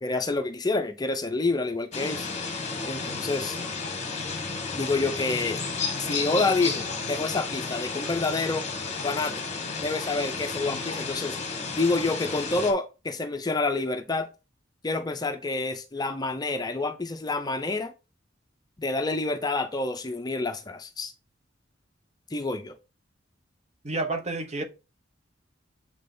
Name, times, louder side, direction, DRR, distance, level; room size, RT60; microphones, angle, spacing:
voice 1, 0.0-2.3 2.8-3.6 4.7-5.6 6.0-8.6 9.0-9.3 9.8-11.4 11.8-14.3 14.8-17.9 18.8-21.1 22.3-22.8, left 3 dB, 20° left, 0.5 m, -28 dB
sound 1, 1.9-12.7, left 4 dB, 35° left, 1.2 m, -32 dB
voice 2, 23.8-24.6, right 2 dB, 35° right, 1.0 m, -29 dB
7.5 x 3.3 x 3.8 m
head